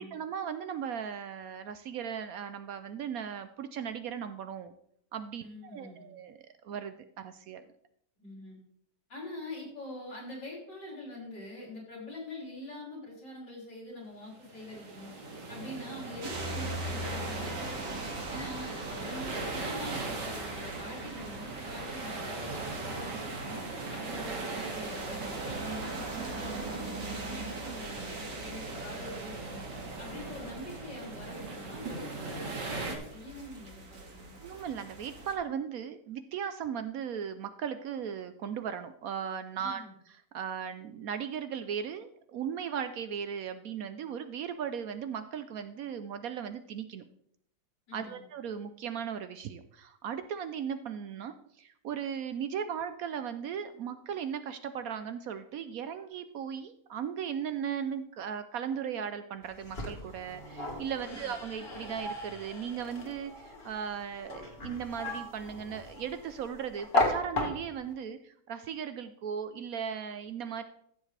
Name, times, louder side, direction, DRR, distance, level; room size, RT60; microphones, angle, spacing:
voice 1, 0.0-4.7 5.1-5.4 5.7-6.4 6.6-7.6 34.4-47.0 47.9-70.6, right 8 dB, 65° right, 10 dB, 0.9 m, -37 dB
voice 2, 5.4-6.1 8.2-8.6 9.1-15.1 15.5-18.0 18.3-23.6 23.9-29.6 30.0-34.4 39.6-39.9 47.9-48.2 61.0-61.3, left 1 dB, 80° left, -4 dB, 3.9 m, -45 dB
sound 1, 14.4-33.0, right 3 dB, 85° right, 2.4 m, -40 dB
sound 2, 16.2-35.3, right 2 dB, 50° right, 2.0 m, -41 dB
sound 3, 59.4-67.9, left 2 dB, 35° left, 1.9 m, -36 dB
14.5 x 7.3 x 3.3 m, 0.68 s
omnidirectional pair, 1.8 m